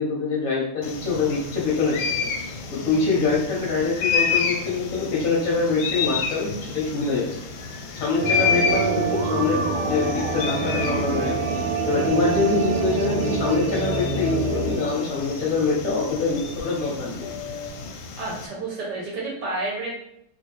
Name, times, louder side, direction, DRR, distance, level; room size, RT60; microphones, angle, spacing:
voice 1, 0.0-2.3 2.7-7.4 7.9-17.3, left 4 dB, 55° left, -4 dB, 1.0 m, -25 dB
sound 1, 0.8-18.5, left 6 dB, 75° left, 1.2 m, -30 dB
sound 2, 8.2-15.7 16.0-16.1 17.2-17.7, right 3 dB, 75° right, 1.4 m, -26 dB
voice 2, 18.2-20.0, right 2 dB, 60° right, -4 dB, 1.4 m, -30 dB
3.2 x 3.0 x 3.0 m, 0.78 s
omnidirectional pair, 2.4 m